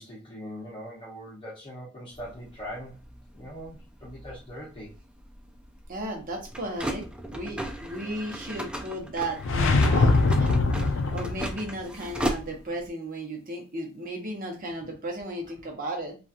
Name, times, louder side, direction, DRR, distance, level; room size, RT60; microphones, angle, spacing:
voice 1, 0.0-3.0 3.3-4.9, equal, 25° left, -5 dB, 0.9 m, -41 dB
sound 1, 2.1-12.9, right 1 dB, 5° right, 0.3 m, -37 dB
voice 2, 5.9-7.0 7.3-16.2, right 1 dB, 40° right, 2 dB, 0.9 m, -35 dB
sound 2, 9.4-11.6, left 3 dB, 65° left, 0.4 m, -22 dB
2.9 x 2.4 x 2.4 m, 0.33 s
head